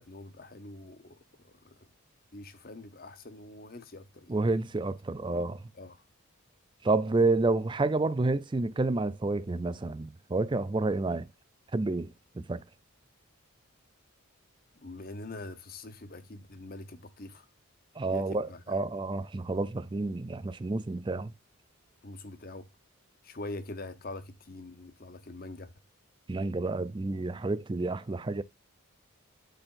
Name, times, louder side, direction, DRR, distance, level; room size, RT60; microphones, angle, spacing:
voice 1, 0.0-1.8 2.3-4.4 5.7-6.0 14.8-17.5 18.1-18.8 22.0-22.7 23.2-25.7, left 2 dB, 40° left, 0.9 m, -44 dB
voice 2, 4.3-5.6 6.8-11.3 11.7-12.6 18.0-21.3 26.3-28.4, right 3 dB, 20° right, 0.4 m, -29 dB
12.5 x 4.4 x 2.5 m
head